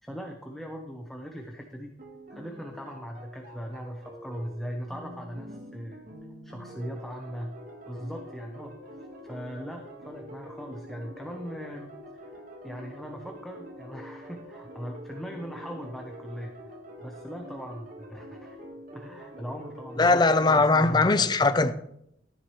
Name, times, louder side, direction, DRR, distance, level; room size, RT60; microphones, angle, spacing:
voice 1, 0.0-1.9 2.3-6.0 6.4-7.5 7.9-8.8 9.2-12.2 12.6-16.7 17.0-18.6 18.9-21.1 21.4-21.6, equal, ahead, 0.9 m, -39 dB
sound 1, 2.0-20.6, equal, 50° right, 1.7 m, -45 dB
voice 2, 20.0-21.7, left 3 dB, 25° left, 0.6 m, -20 dB
13.5 x 10.5 x 3.2 m
head